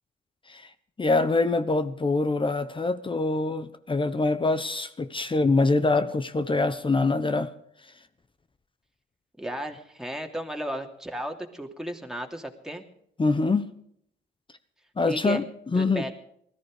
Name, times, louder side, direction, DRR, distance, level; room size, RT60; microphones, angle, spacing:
voice 1, 1.0-7.5 13.2-13.7 15.0-15.5 15.7-16.0, left 3 dB, 25° left, 11 dB, 1.1 m, -24 dB
voice 2, 9.4-12.8 15.1-15.4 15.8-16.1, right 1 dB, 5° right, 2 dB, 2.9 m, -34 dB
20.0 x 14.0 x 5.0 m, 0.69 s
cardioid pair, 90°, 20 cm